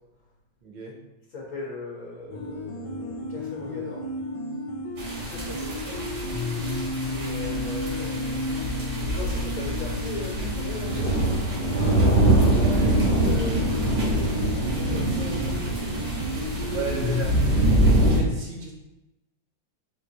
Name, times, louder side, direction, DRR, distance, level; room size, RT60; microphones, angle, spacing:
voice 1, 0.6-0.9 5.5-5.6 5.8-6.0 12.5-13.7 14.5-15.6 16.6-17.3 18.1-18.7, right 3 dB, 65° right, -1 dB, 1.4 m, -35 dB
voice 2, 1.3-4.0 5.2-6.0 7.1-11.2, left 3 dB, 60° left, -4 dB, 1.1 m, -38 dB
sound 1, 2.3-17.2, left 1 dB, 75° left, 1.3 m, -32 dB
sound 2, 5.0-18.2, right 1 dB, 85° right, 2.5 m, -24 dB
4.5 x 2.8 x 4.0 m, 0.97 s
omnidirectional pair, 2.3 m